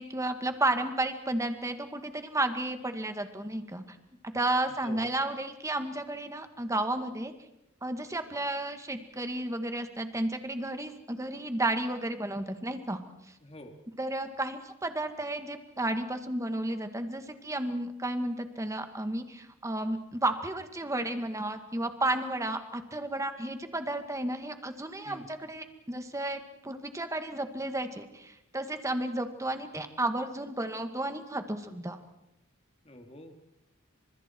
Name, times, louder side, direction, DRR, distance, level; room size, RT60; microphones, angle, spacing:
voice 1, 0.0-4.0 4.3-7.3 7.8-13.0 14.0-32.0, right 1 dB, 15° right, 7 dB, 1.9 m, -32 dB
voice 2, 13.4-13.7 25.0-25.3 32.8-33.4, left 1 dB, 30° left, 4 dB, 2.6 m, -46 dB
29.0 x 26.5 x 4.6 m, 0.83 s
head